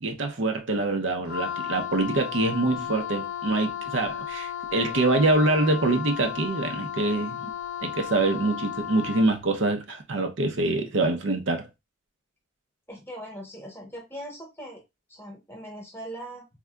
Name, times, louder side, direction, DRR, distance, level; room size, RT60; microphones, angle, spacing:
voice 1, 0.0-7.5 7.8-11.7, right 2 dB, 70° right, 0.6 m, -25 dB
Wind instrument woodwind instrument, 1.2-9.4, left 10 dB, 85° left, 0.4 m, -34 dB
voice 2, 12.9-14.8 15.1-16.4, right 1 dB, 10° left, 0.9 m, -40 dB
3.6 x 2.7 x 2.2 m
head